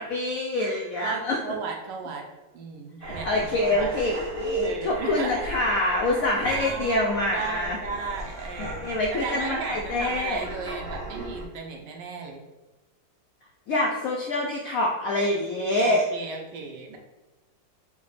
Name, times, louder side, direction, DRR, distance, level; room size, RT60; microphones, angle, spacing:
voice 1, 0.0-1.4 3.0-7.8 8.6-10.4 13.7-16.0, left 1 dB, 75° left, -1 dB, 0.7 m, -26 dB
voice 2, 1.0-2.2 2.5-3.9 4.6-5.5 6.4-12.4 15.8-17.0, right 5 dB, 75° right, 2 dB, 1.3 m, -35 dB
sound 1, 3.0-11.4, right 1 dB, 90° right, 0.4 m, -38 dB
4.9 x 2.1 x 4.0 m, 1.1 s
omnidirectional pair, 2.0 m